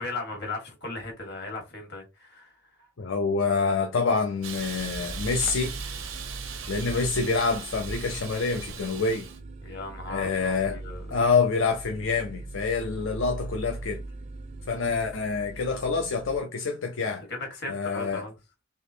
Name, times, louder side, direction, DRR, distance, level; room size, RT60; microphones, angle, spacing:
voice 1, 0.0-2.5 9.6-11.2 17.3-18.3, left 2 dB, 55° left, 1.5 m, -37 dB
voice 2, 3.0-5.7 6.7-9.3 10.1-10.8 11.1-14.0 14.7-17.2 17.7-18.2, left 4 dB, 80° left, 0.5 m, -26 dB
Hiss, 4.4-9.4, right 6 dB, 85° right, 0.7 m, -39 dB
sound 1, 4.6-16.4, right 2 dB, 35° right, 0.4 m, -41 dB
3.5 x 3.3 x 2.7 m
head